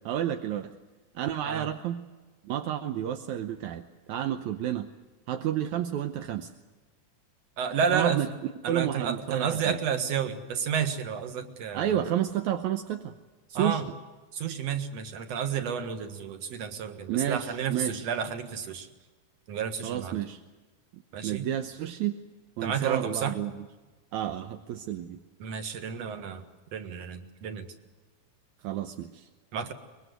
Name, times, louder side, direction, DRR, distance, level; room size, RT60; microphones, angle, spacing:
voice 1, 0.1-0.7 1.2-2.1 2.4-4.9 5.3-6.5 7.9-8.3 8.7-9.8 11.7-13.1 13.5-13.8 17.1-18.1 19.8-20.4 20.9-22.2 22.6-23.7 24.1-25.2 28.6-29.3, right 11 dB, 70° right, 7 dB, 1.9 m, -31 dB
voice 2, 7.6-8.2 8.6-12.0 13.5-13.9 14.3-18.9 19.5-20.2 21.1-21.5 22.6-23.4 25.4-26.5 26.7-27.7 29.5-29.7, right 7 dB, 55° right, 8 dB, 2.4 m, -31 dB
24.5 x 22.0 x 8.0 m, 1.3 s
omnidirectional pair, 4.1 m